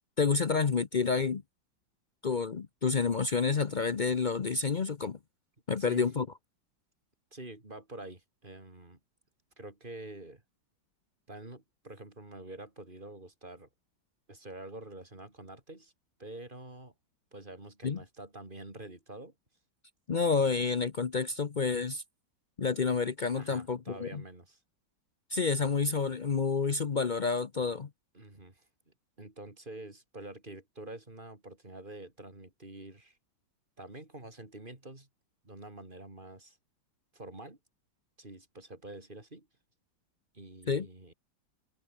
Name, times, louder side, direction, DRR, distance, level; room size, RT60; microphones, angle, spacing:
voice 1, 0.2-1.4 2.2-5.2 5.7-6.3 17.8-18.0 20.1-22.0 22.6-24.2 25.3-27.9 40.7-40.9, left 5 dB, 90° left, 0.4 m, -29 dB
voice 2, 7.3-9.0 9.6-10.4 11.3-13.7 14.3-15.9 16.2-16.9 17.3-19.3 23.4-24.6 28.1-28.7 29.2-33.2 33.8-35.1 35.4-36.6 37.1-37.6 38.2-39.5 40.3-41.1, right 2 dB, 25° right, 3.9 m, -47 dB
omnidirectional pair, 2.2 m